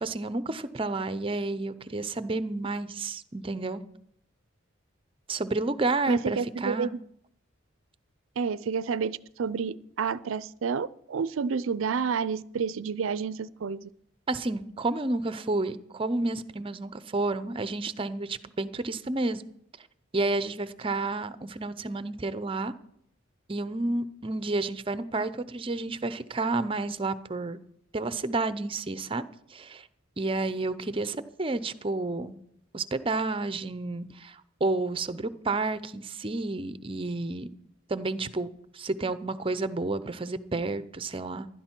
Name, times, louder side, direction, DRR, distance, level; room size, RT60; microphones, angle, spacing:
voice 1, 0.0-3.8 5.3-6.9 14.3-19.4 20.1-22.7 23.5-27.6 27.9-29.2 29.5-29.9 30.2-32.3 32.7-37.5 37.9-41.5, right 2 dB, 25° right, 0.6 m, -30 dB
voice 2, 6.1-6.9 8.4-13.9, right 6 dB, 85° right, 0.5 m, -30 dB
16.0 x 12.0 x 4.5 m
head